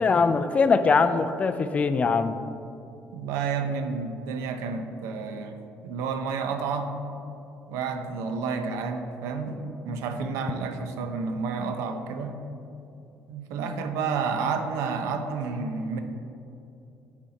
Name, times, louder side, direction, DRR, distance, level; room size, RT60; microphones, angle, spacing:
voice 1, 0.0-2.4, left 4 dB, 25° left, 10 dB, 0.4 m, -22 dB
voice 2, 3.1-5.6 5.8-6.9 7.7-12.4 13.3-16.0, right 5 dB, 90° right, 7 dB, 0.6 m, -30 dB
8.4 x 4.4 x 4.1 m, 2.7 s
cardioid pair, 125°, 5 cm